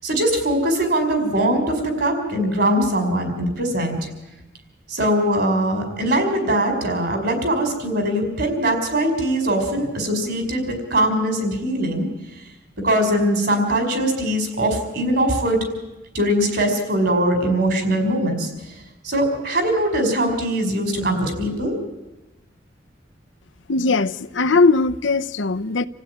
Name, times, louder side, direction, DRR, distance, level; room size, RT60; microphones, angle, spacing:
voice 1, 0.0-4.1 4.9-12.1 12.8-15.6 16.1-18.8 19.0-21.7, right 1 dB, 55° right, 5.4 m, -21 dB
voice 2, 23.7-25.9, left 3 dB, 85° left, 0.8 m, -19 dB
27.5 x 15.5 x 9.9 m
head